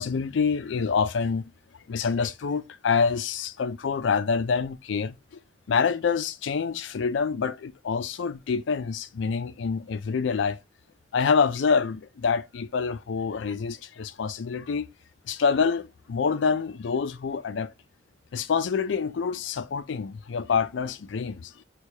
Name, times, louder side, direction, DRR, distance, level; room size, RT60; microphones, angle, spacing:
voice 1, 0.0-1.5 1.9-5.1 5.7-10.6 11.1-14.9 15.3-17.7 18.3-21.5, left 5 dB, 80° left, 0.4 m, -26 dB
6.3 x 2.3 x 2.8 m
head